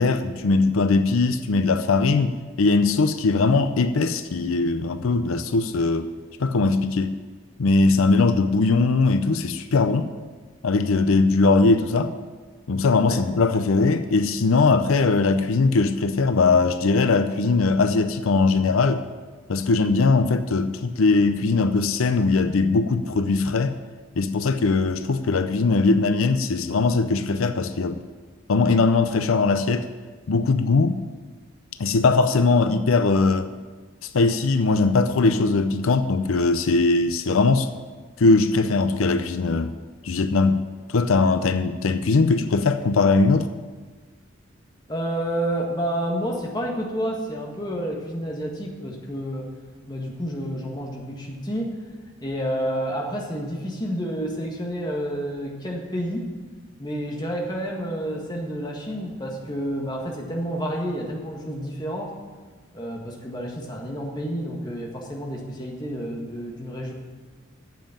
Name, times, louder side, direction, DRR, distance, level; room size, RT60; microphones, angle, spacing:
voice 1, 0.0-6.1 6.4-7.2 7.6-10.1 10.6-12.1 12.7-19.0 19.5-23.7 24.2-28.0 28.5-29.9 30.3-31.0 31.8-33.5 34.0-37.7 38.2-39.7 40.0-40.6 40.9-43.5, left 3 dB, 85° left, 10 dB, 0.6 m, -20 dB
voice 2, 44.9-49.5 49.9-51.7 52.2-56.3 56.8-62.1 62.7-66.9, equal, 20° left, -1 dB, 1.7 m, -29 dB
9.1 x 7.3 x 9.0 m, 1.4 s
head